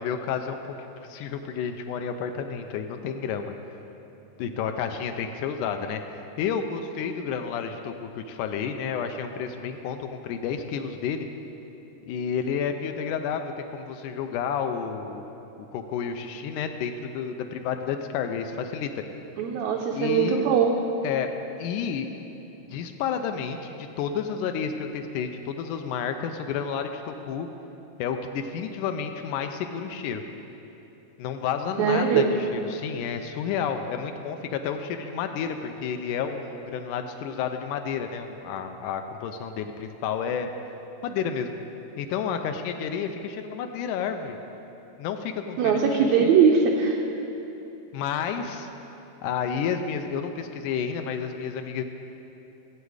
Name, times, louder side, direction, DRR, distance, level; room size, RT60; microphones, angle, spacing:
voice 1, 0.0-3.5 4.4-6.0 6.4-11.3 12.1-15.2 15.7-18.9 19.9-20.4 21.0-21.3 21.6-22.1 22.7-27.5 28.0-30.2 31.2-40.5 41.0-41.6 42.0-44.4 45.0-46.4 47.9-48.7 49.2-51.8, left 7 dB, 80° left, 6 dB, 2.0 m, -30 dB
voice 2, 19.4-20.8 31.8-32.3 45.6-47.0, right 6 dB, 75° right, 0 dB, 1.6 m, -21 dB
15.0 x 7.9 x 4.8 m, 3.0 s
omnidirectional pair, 3.8 m